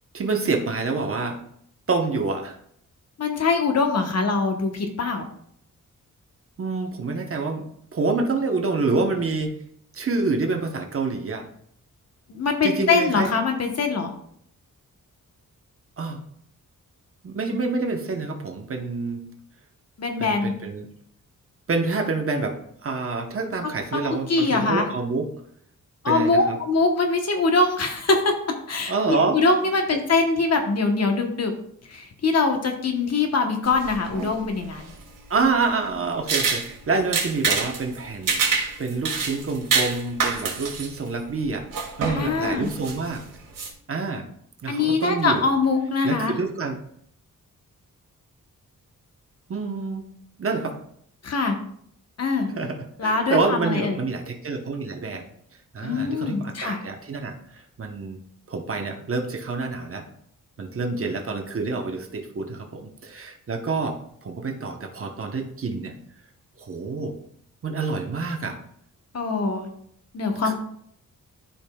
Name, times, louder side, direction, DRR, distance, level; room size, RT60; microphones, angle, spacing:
voice 1, 0.1-1.4 1.9-2.6 6.6-7.6 7.9-9.6 9.9-11.4 12.6-13.3 16.0-16.2 17.2-19.3 20.2-20.9 21.7-25.3 26.1-26.6 28.9-29.4 29.9-30.0 35.3-38.4 38.8-41.7 42.0-43.2 43.9-44.3 44.6-45.4 46.0-46.8 49.5-50.1 50.4-50.7 52.5-55.2 55.7-57.4 57.8-58.2 58.5-60.1 60.6-65.9 66.6-67.1 67.6-68.6 70.4-70.5, right 3 dB, 45° right, 3 dB, 1.0 m, -27 dB
voice 2, 3.2-5.3 12.3-14.1 20.0-20.5 23.6-23.7 24.3-24.8 26.0-28.3 28.7-31.5 31.9-34.9 42.1-42.7 44.7-46.3 51.2-51.6 52.2-52.5 53.0-54.0 55.8-56.8 69.1-69.7 70.1-70.5, left 3 dB, 50° left, 4 dB, 1.1 m, -23 dB
sound 1, 33.6-43.7, right 5 dB, 80° right, 1.7 m, -28 dB
13.0 x 5.2 x 2.3 m, 0.68 s
wide cardioid pair, 145°, 32 cm